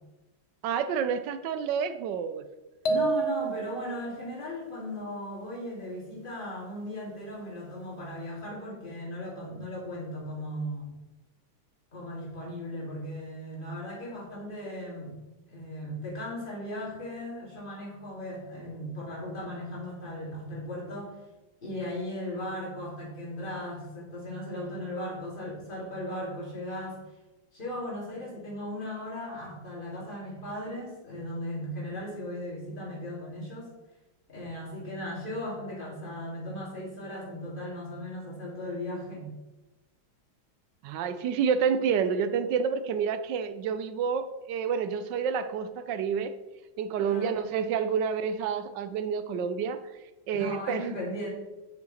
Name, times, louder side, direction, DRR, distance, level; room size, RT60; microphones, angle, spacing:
voice 1, 0.6-2.4 40.8-46.4 46.8-49.8 50.3-50.9, right 6 dB, 70° right, 11 dB, 1.1 m, -29 dB
sound 1, 2.8-4.0, right 4 dB, 80° left, 0.6 m, -28 dB
voice 2, 2.8-11.0 11.9-15.1 15.5-21.2 21.6-27.0 27.5-33.7 34.3-39.3 47.0-47.5 50.3-51.3, left 1 dB, 25° left, -5 dB, 3.0 m, -37 dB
8.4 x 6.6 x 4.2 m, 1.1 s
omnidirectional pair, 2.3 m